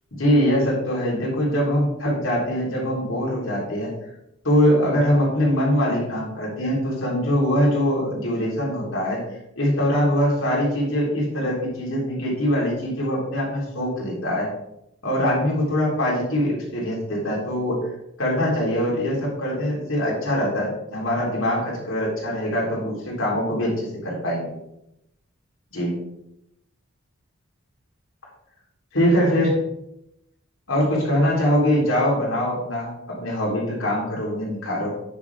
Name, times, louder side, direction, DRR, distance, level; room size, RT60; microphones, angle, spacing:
voice 1, 0.2-3.9 4.4-9.2 9.6-14.5 15.0-17.9 18.2-24.5 25.7-26.0 28.9-29.6 30.7-34.9, equal, 70° left, -4 dB, 3.9 m, -23 dB
9.7 x 7.3 x 3.7 m, 0.83 s
head